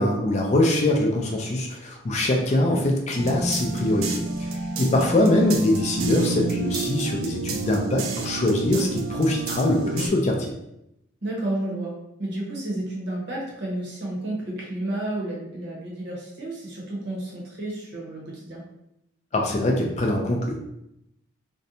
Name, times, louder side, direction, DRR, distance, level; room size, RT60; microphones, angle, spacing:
voice 1, 0.0-4.5 4.8-10.5 19.3-20.6, left 1 dB, 35° left, 0 dB, 0.3 m, -23 dB
voice 2, 2.5-2.9 5.0-5.1 11.2-18.6, right 1 dB, 55° right, -3 dB, 0.8 m, -31 dB
sound 1, 3.2-10.1, right 3 dB, 90° right, 0.4 m, -29 dB
2.6 x 2.1 x 2.6 m, 0.83 s
head